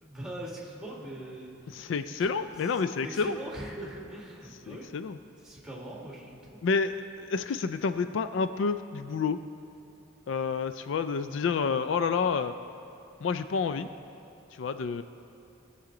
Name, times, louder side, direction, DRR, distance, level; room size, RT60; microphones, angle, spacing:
voice 1, 0.0-1.5 2.7-4.9 5.4-6.4, right 1 dB, 5° right, -3 dB, 1.8 m, -40 dB
voice 2, 1.7-3.4 4.7-5.2 6.6-9.4 10.3-12.5 13.2-13.9 14.5-15.0, left 5 dB, 70° left, 11 dB, 0.4 m, -29 dB
19.0 x 7.1 x 3.8 m, 2.7 s
head